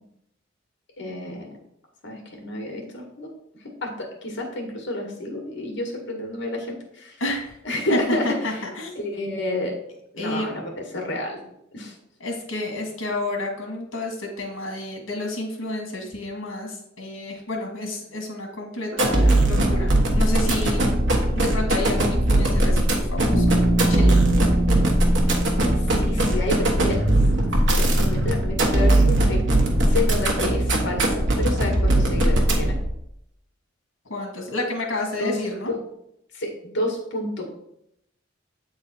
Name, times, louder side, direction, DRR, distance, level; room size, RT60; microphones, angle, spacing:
voice 1, 1.0-1.5 2.0-3.3 3.8-7.2 7.6-8.6 9.0-9.7 10.1-11.4 11.7-11.9 26.0-27.0 27.5-29.4 29.8-32.8 35.2-35.4 36.3-37.5, left 1 dB, 60° left, 2 dB, 1.8 m, -29 dB
voice 2, 7.2-7.6 7.9-8.9 10.2-10.5 12.2-20.9 21.3-24.3 34.1-35.7, left 2 dB, 85° left, 1 dB, 1.6 m, -30 dB
sound 1, 18.9-32.9, right 1 dB, 65° right, 1.2 m, -20 dB
Bass guitar, 23.3-27.3, right 1 dB, 25° left, 1.3 m, -25 dB
8.0 x 3.9 x 4.3 m, 0.77 s
head